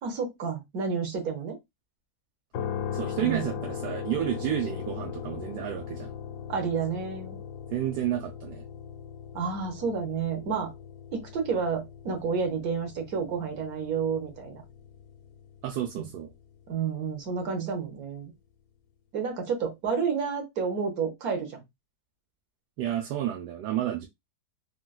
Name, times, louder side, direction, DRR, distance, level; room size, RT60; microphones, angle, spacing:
voice 1, 0.0-1.6 3.2-3.5 6.5-7.4 9.3-10.7 11.1-14.6 16.0-16.1 16.7-18.3 19.1-21.6, right 6 dB, 65° right, 1.3 m, -30 dB
sound 1, 2.5-16.5, left 8 dB, 85° left, 1.2 m, -39 dB
voice 2, 2.9-6.1 7.7-8.6 15.6-16.3 22.8-24.1, right 11 dB, 85° right, 1.2 m, -31 dB
3.8 x 2.2 x 2.2 m
omnidirectional pair, 1.7 m